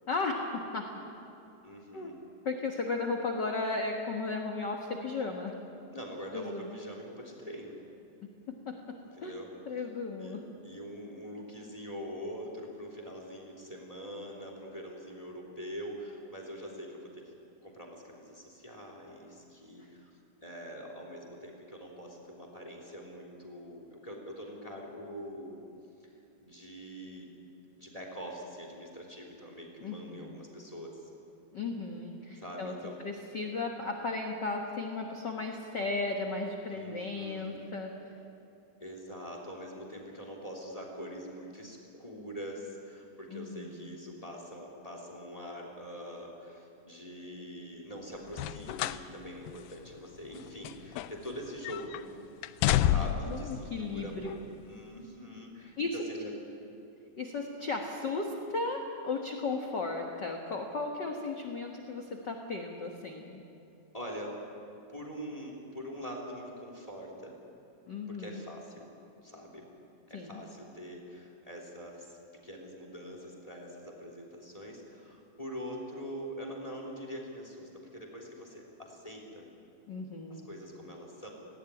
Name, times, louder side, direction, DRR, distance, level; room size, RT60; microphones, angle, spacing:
voice 1, 0.1-0.8 1.9-2.1 2.4-5.5 6.3-6.8 8.5-9.4 9.7-10.4 29.8-30.4 31.5-32.7 33.0-37.9 43.3-43.8 52.9-54.3 55.8-56.0 57.2-63.4 67.9-68.4 70.1-70.4 79.9-80.5, left 3 dB, 60° left, 2 dB, 1.1 m, -35 dB
voice 2, 1.6-2.1 5.9-7.8 9.1-9.5 10.2-17.3 17.6-20.1 20.4-25.6 26.0-26.1 26.4-27.3 27.8-31.1 32.4-33.0 36.7-37.5 38.8-52.1 52.8-54.1 54.7-56.3 63.9-64.4 64.9-67.4 68.1-68.9 69.2-69.6 70.1-72.2 72.4-79.5 80.3-81.3, equal, 10° left, 1 dB, 2.9 m, -44 dB
sound 1, 48.3-49.1 49.5-49.6 50.3-51.4 51.6-52.0 52.4-53.4 54.2-54.4, left 12 dB, 80° left, 2.2 m, -29 dB
18.5 x 17.5 x 9.7 m, 2.8 s
omnidirectional pair, 4.2 m